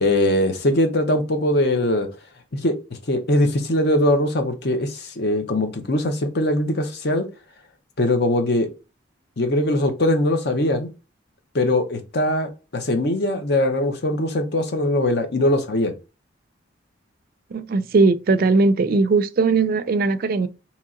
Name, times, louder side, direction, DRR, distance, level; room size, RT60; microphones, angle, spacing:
voice 1, 0.0-2.1 2.5-2.8 3.1-7.3 8.0-8.7 9.4-10.9 11.5-15.9, left 1 dB, 60° left, 0.7 m, -21 dB
voice 2, 17.5-20.5, right 3 dB, 50° right, 0.3 m, -19 dB
2.9 x 2.8 x 3.6 m
head